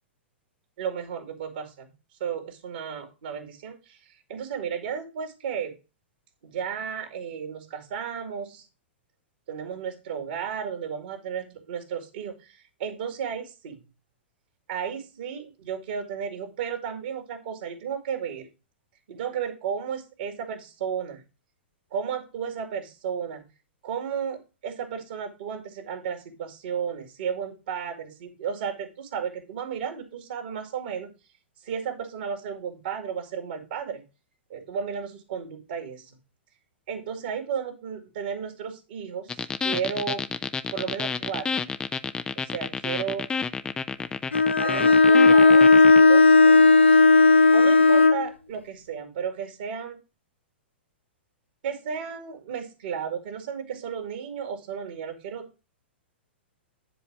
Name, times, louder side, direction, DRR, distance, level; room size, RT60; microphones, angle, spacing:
voice 1, 0.8-1.9 2.2-5.7 6.4-8.7 9.5-13.8 14.7-18.5 19.1-21.2 21.9-23.5 23.8-31.1 31.6-34.0 34.5-36.2 36.9-40.2 40.7-41.6 42.4-43.2 44.6-47.0 47.5-50.0 51.6-55.6, right 7 dB, 55° right, 4 dB, 2.4 m, -33 dB
sound 1, 39.3-46.0, left 5 dB, 15° left, 0.6 m, -30 dB
Bowed string instrument, 44.3-48.3, left 3 dB, 75° left, 0.6 m, -15 dB
10.0 x 4.1 x 6.0 m, 0.29 s
figure-of-eight pair, 105°, 6 cm